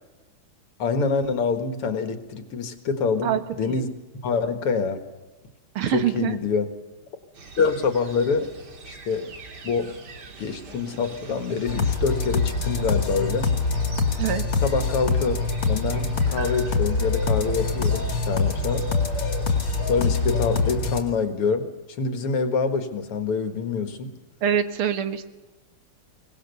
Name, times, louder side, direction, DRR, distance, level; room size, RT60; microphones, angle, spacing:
voice 1, 0.8-3.9 4.2-5.0 5.9-6.7 7.6-8.5 8.8-9.3 9.6-9.9 10.4-13.5 14.6-15.4 15.7-18.9 19.9-21.7 22.0-24.1, left 5 dB, 85° left, 9 dB, 2.5 m, -26 dB
voice 2, 3.2-3.9 5.8-6.4 14.2-14.4 24.4-25.3, right 9 dB, 75° right, 10 dB, 2.1 m, -25 dB
sound 1, 7.4-20.8, right 2 dB, 50° right, 2.5 m, -40 dB
sound 2, 11.7-21.0, left 4 dB, 70° left, 3.1 m, -24 dB
23.5 x 19.5 x 6.8 m, 1.2 s
omnidirectional pair, 2.4 m